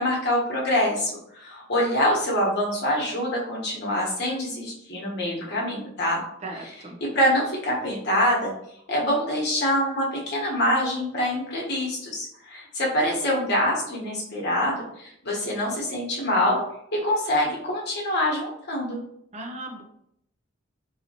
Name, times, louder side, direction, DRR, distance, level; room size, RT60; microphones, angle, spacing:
voice 1, 0.0-6.2 7.0-8.5 8.9-16.6 16.9-19.0, left 1 dB, 55° left, -3 dB, 1.2 m, -25 dB
voice 2, 6.4-7.0 19.3-19.8, right 2 dB, 35° right, 2 dB, 0.6 m, -36 dB
4.1 x 2.8 x 2.8 m, 0.73 s
head